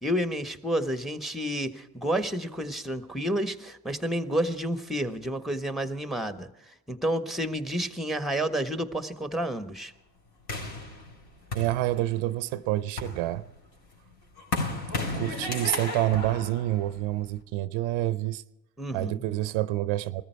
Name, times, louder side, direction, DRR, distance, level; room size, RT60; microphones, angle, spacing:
voice 1, 0.0-9.9 18.8-19.2, right 1 dB, ahead, 1.4 m, -30 dB
sound 1, 10.5-12.3 12.8-17.4, left 3 dB, 50° left, 4.6 m, -34 dB
voice 2, 11.5-13.4 15.1-18.4 18.9-20.2, right 15 dB, 75° right, 0.7 m, -28 dB
20.5 x 14.0 x 4.6 m
supercardioid pair, 65°, 47 cm